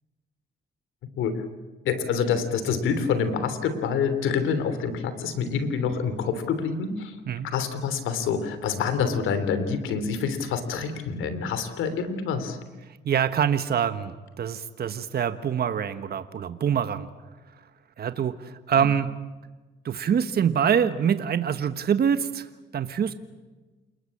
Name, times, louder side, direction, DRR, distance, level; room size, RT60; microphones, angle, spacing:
voice 1, 1.8-7.1 7.4-12.6, left 6 dB, 85° left, 11 dB, 3.3 m, -27 dB
voice 2, 13.0-17.1 18.0-19.1 19.8-23.1, right 8 dB, 50° right, 10 dB, 1.4 m, -25 dB
29.0 x 21.0 x 8.8 m, 1.2 s
cardioid pair, 90°, 20 cm